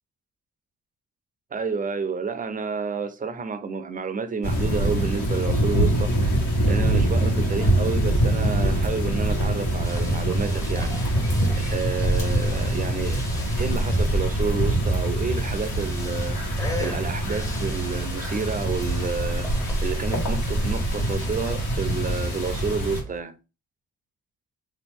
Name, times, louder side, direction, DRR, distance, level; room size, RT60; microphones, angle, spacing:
voice 1, 1.5-6.4 6.7-11.3 11.5-13.2 13.6-23.3, right 5 dB, 25° right, 0.5 m, -30 dB
sound 1, 4.4-23.0, right 1 dB, 90° left, 1.5 m, -24 dB
sound 2, 9.8-23.2, left 1 dB, 10° left, 0.7 m, -40 dB
3.0 x 2.3 x 3.6 m
cardioid pair, 90°, 30 cm